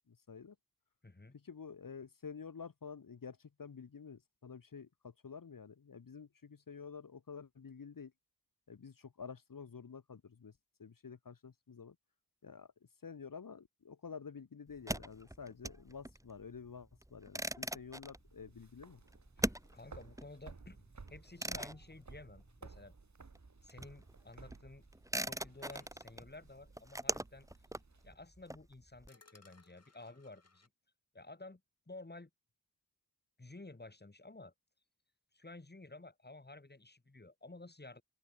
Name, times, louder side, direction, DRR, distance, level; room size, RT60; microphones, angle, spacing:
voice 1, 0.1-0.6 1.3-8.1 8.7-10.5 10.8-12.0 12.4-12.7 13.0-19.0, left 6 dB, 65° left, 2.5 m, -50 dB
voice 2, 1.0-1.4 19.4-22.9 23.6-24.8 25.2-27.5 28.0-30.7 31.1-31.6 31.9-32.3 33.4-34.5 35.3-38.0, left 2 dB, 25° left, 4.6 m, -53 dB
sound 1, 14.7-23.0 23.3-29.1, right 1 dB, 10° right, 3.0 m, -42 dB
sound 2, 18.2-28.1, right 4 dB, 50° right, 4.2 m, -57 dB
sound 3, 25.5-25.9 27.1-27.2 27.8-27.9 29.1-30.7, left 3 dB, 45° left, 4.1 m, -65 dB
open air
cardioid pair, 50°, 36 cm